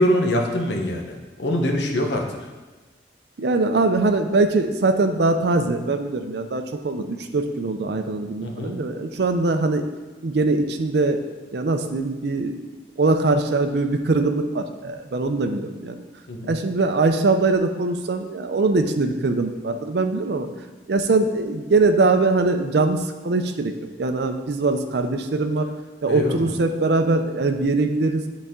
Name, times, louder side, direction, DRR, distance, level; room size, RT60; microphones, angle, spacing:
voice 1, 0.0-2.2 8.4-8.7 16.3-16.6 26.1-26.5, left 1 dB, 75° left, 2 dB, 0.9 m, -23 dB
voice 2, 3.4-9.9 10.2-11.2 11.5-12.5 13.0-16.0 16.4-20.5 20.9-23.7 24.0-25.7 26.0-28.2, right 3 dB, 65° right, 7 dB, 0.5 m, -22 dB
7.9 x 4.1 x 3.6 m, 1.2 s
head